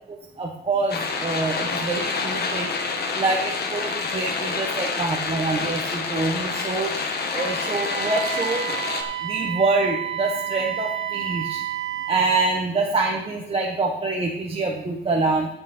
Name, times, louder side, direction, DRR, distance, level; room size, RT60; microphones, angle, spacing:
voice 1, 0.4-2.7 3.1-6.9 7.3-8.7 9.2-11.6 12.1-15.5, right 3 dB, 30° right, 0 dB, 1.4 m, -25 dB
sound 1, 0.9-9.0, left 4 dB, 55° left, 1.7 m, -28 dB
Wind instrument woodwind instrument, 7.3-12.4, right 9 dB, 85° right, 1.6 m, -30 dB
15.0 x 6.0 x 4.5 m, 0.85 s
cardioid pair, 90°, 20 cm